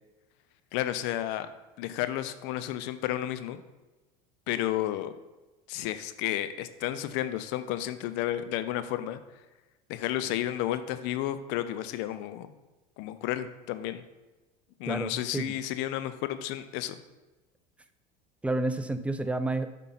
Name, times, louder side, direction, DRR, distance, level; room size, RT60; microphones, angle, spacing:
voice 1, 0.7-1.5 1.8-3.6 4.5-5.1 5.7-9.2 9.9-12.5 13.0-14.0 14.8-17.0, left 13 dB, 60° left, 11 dB, 0.6 m, -32 dB
voice 2, 14.9-15.6 18.4-19.7, right 2 dB, 5° right, 10 dB, 0.6 m, -30 dB
8.2 x 5.4 x 4.1 m, 1.1 s
hypercardioid pair, 80°, 21 cm